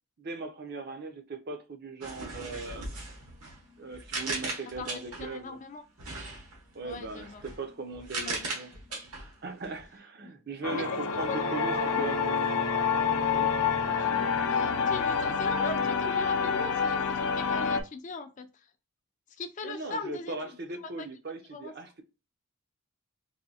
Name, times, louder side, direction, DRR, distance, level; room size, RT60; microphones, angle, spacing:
voice 1, 0.2-2.9 3.8-5.6 6.7-8.7 9.4-12.3 13.3-13.5 19.6-22.0, right 3 dB, 45° right, 0.5 m, -39 dB
sound 1, 2.0-5.4 6.0-9.9, right 3 dB, 85° right, 1.3 m, -39 dB
voice 2, 4.8-5.8 6.8-7.4 8.3-8.5 10.2-10.3 10.7-10.8 11.3-12.4 13.9-14.1 14.5-18.5 19.4-20.4 21.0-21.1 21.5-21.7, left 3 dB, 35° left, 0.4 m, -40 dB
sound 2, 10.6-17.8, left 6 dB, 80° left, 0.6 m, -27 dB
4.1 x 2.6 x 2.8 m
head